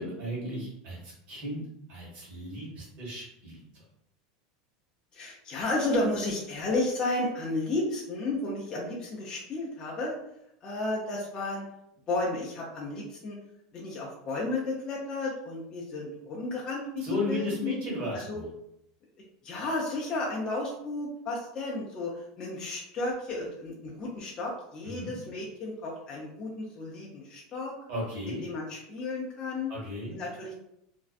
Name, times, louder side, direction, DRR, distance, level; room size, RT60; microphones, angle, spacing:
voice 1, 0.0-1.6 1.9-3.8 17.0-18.4 24.8-25.2 27.9-28.4 29.7-30.2, left 1 dB, 45° right, -4 dB, 1.2 m, -35 dB
voice 2, 5.1-10.2 10.6-11.7 12.1-13.4 13.7-17.8 18.1-18.4 19.4-27.7 28.3-29.7 30.1-30.5, left 2 dB, 25° left, -4 dB, 0.4 m, -33 dB
2.5 x 2.1 x 2.4 m, 0.78 s
supercardioid pair, 155°, 3 cm